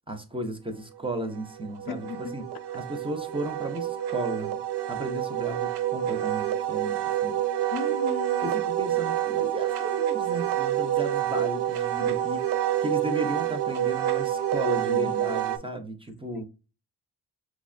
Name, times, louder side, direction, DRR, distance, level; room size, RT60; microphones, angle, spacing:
voice 1, 0.1-2.5 2.7-4.6 4.9-7.4 8.4-12.5 12.8-16.5, right 1 dB, 15° right, 0.4 m, -34 dB
Wind instrument woodwind instrument, 1.2-15.6, right 12 dB, 80° right, 0.6 m, -28 dB
voice 2, 1.9-2.4 7.7-8.6 14.6-15.3 16.3-16.5, left 5 dB, 65° left, 0.5 m, -37 dB
5.9 x 2.1 x 2.4 m
wide cardioid pair, 155°, 40 cm